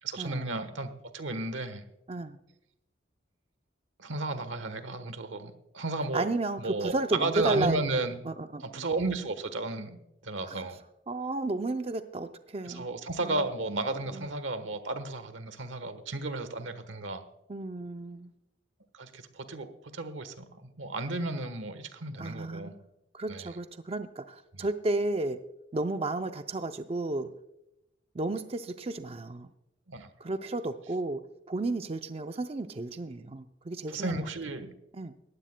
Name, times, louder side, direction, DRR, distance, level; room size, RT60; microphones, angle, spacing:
voice 1, 0.0-1.9 4.0-6.3 6.6-8.2 8.6-10.8 12.6-17.2 18.9-22.7 23.3-23.5 29.9-30.1 33.9-34.7, right 2 dB, 90° right, 11 dB, 1.2 m, -33 dB
voice 2, 6.1-7.8 8.3-8.8 10.5-10.6 11.1-12.9 13.2-13.4 14.1-14.3 17.5-18.3 22.2-22.8 23.1-25.4 25.7-27.3 28.1-29.5 30.2-31.2 31.5-34.2 34.9-35.1, right 2 dB, 30° right, 8 dB, 0.5 m, -32 dB
19.5 x 15.0 x 2.2 m, 0.89 s
head